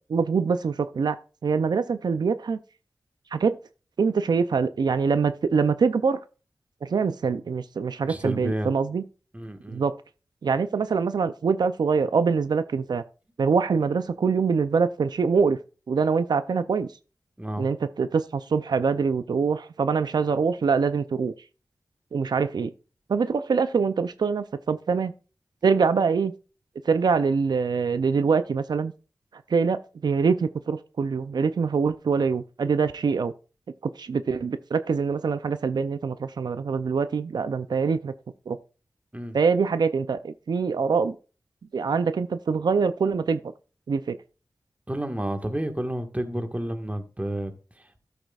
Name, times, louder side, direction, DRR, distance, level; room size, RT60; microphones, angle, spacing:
voice 1, 0.1-1.2 1.4-2.6 3.3-3.6 4.0-6.2 6.8-9.0 9.7-9.9 10.4-13.0 13.4-15.6 15.9-16.9 17.6-21.3 22.1-22.7 23.1-25.1 25.6-26.3 26.8-28.9 29.3-33.3 33.8-38.1 38.5-38.6 39.3-41.2 41.7-43.4 43.9-44.2, right 5 dB, 85° right, 0.4 m, -24 dB
voice 2, 8.0-8.7 9.3-9.8 17.4-17.7 39.1-39.4 44.9-48.0, right 1 dB, 20° right, 1.6 m, -31 dB
13.0 x 8.0 x 2.4 m
cardioid pair, 45°, 7 cm